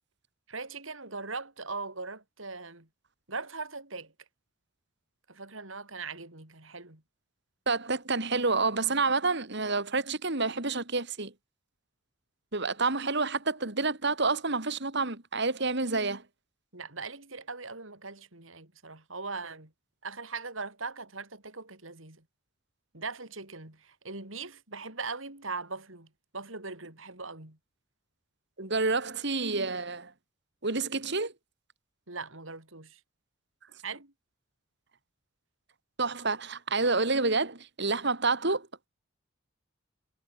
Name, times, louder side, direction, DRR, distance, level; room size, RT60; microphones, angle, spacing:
voice 1, 0.5-2.9 3.3-4.1 5.3-7.0 16.7-19.7 20.0-22.2 22.9-27.6 32.1-33.0 33.8-34.1, right 4 dB, 75° right, 5.3 m, -40 dB
voice 2, 7.7-11.3 12.5-16.2 28.6-30.1 30.6-31.3 36.0-38.7, right 3 dB, 60° right, 2.8 m, -28 dB
head